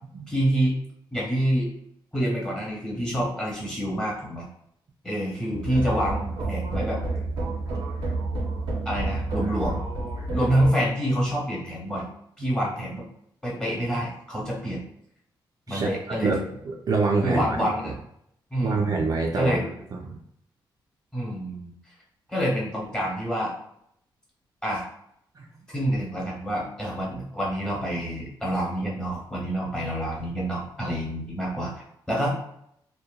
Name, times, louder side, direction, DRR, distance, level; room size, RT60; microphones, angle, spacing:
voice 1, 0.3-0.8 1.1-1.7 2.1-4.5 5.0-7.0 8.8-9.8 10.3-12.1 12.4-13.1 13.4-14.8 15.7-16.3 17.2-17.9 18.5-19.0 19.3-19.6 21.1-21.7 22.3-23.5 24.6-24.9 25.7-32.3, equal, 10° left, -4 dB, 0.9 m, -27 dB
sound 1, 5.5-10.7, right 2 dB, 90° right, 0.6 m, -29 dB
voice 2, 16.2-17.7 18.6-20.2 25.4-25.5, right 4 dB, 45° right, 0 dB, 0.4 m, -26 dB
2.8 x 2.1 x 2.2 m, 0.73 s
cardioid pair, 110°, 9 cm